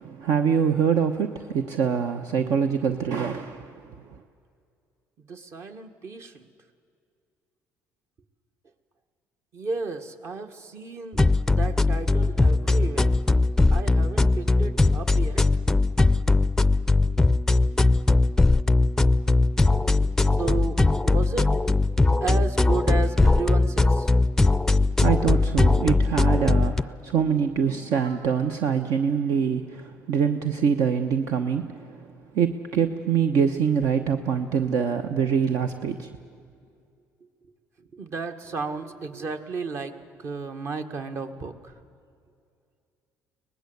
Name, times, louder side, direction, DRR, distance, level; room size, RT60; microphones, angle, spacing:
voice 1, 0.0-3.8 25.0-32.1 32.3-36.1, right 7 dB, 70° right, 7 dB, 1.1 m, -24 dB
voice 2, 5.3-6.5 9.5-13.2 13.7-15.4 17.7-17.9 20.3-21.6 22.2-24.1 37.8-41.8, right 4 dB, 50° right, 7 dB, 1.8 m, -33 dB
sound 1, 11.1-26.8, left 2 dB, 10° left, 0.5 m, -20 dB
24.0 x 19.5 x 8.1 m, 2.3 s
cardioid pair, 110°, 6 cm